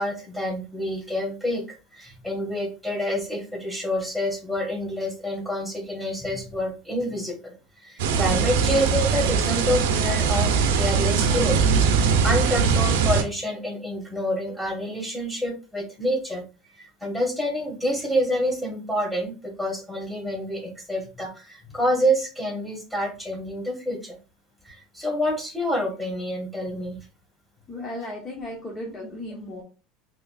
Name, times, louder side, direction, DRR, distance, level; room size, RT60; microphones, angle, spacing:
voice 1, 0.0-1.6 1.9-7.5 7.8-11.6 12.0-16.4 16.8-24.2 24.6-27.0, equal, ahead, 0 dB, 1.6 m, -28 dB
sound 1, 8.0-13.2, right 6 dB, 80° right, 0.5 m, -21 dB
voice 2, 27.7-29.6, left 1 dB, 30° left, -1 dB, 1.0 m, -35 dB
3.9 x 3.0 x 2.4 m, 0.32 s
supercardioid pair, 100°, 0 cm